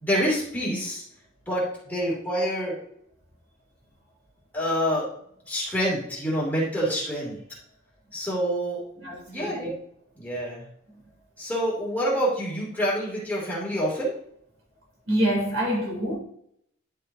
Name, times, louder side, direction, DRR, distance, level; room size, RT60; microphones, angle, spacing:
voice 1, 0.0-1.0 1.5-2.8 4.5-5.1 5.5-7.4 8.1-8.8 9.3-9.7 10.2-10.6 11.4-14.1, equal, 10° left, 2.8 m, -27 dB
voice 2, 9.0-9.7 15.1-16.2, equal, 70° right, 3.4 m, -26 dB
11.0 x 5.7 x 2.8 m
head